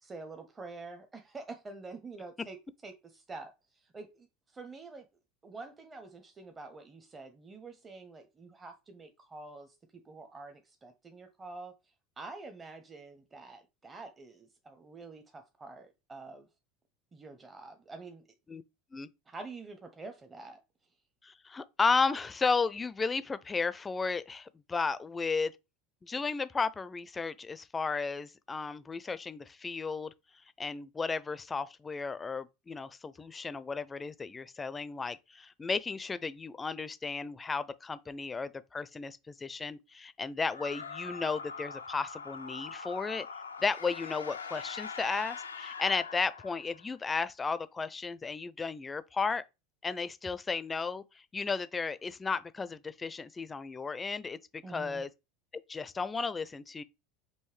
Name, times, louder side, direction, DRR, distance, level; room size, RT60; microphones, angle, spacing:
voice 1, 0.0-5.1 5.4-11.7 12.2-16.5 17.1-18.2 19.3-20.6 54.6-55.0, right 3 dB, 20° right, 0.7 m, -47 dB
voice 2, 21.2-25.5 26.0-30.1 30.6-43.3 43.6-49.4 49.8-51.0 51.3-55.1 55.7-56.8, left 4 dB, 20° left, 0.4 m, -34 dB
sound 1, 40.5-46.9, left 5 dB, 85° left, 0.4 m, -42 dB
5.5 x 2.6 x 3.2 m
figure-of-eight pair, 80°, 0 cm